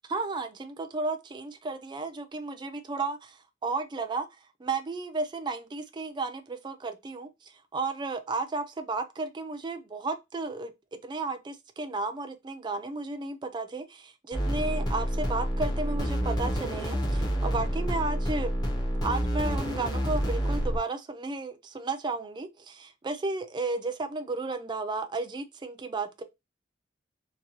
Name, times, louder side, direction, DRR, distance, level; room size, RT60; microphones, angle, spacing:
voice 1, 0.1-4.3 4.6-10.7 11.0-18.5 19.0-26.2, right 3 dB, 25° right, 0.3 m, -33 dB
sound 1, 14.3-20.8, equal, 20° left, 0.7 m, -28 dB
2.9 x 2.2 x 2.6 m
head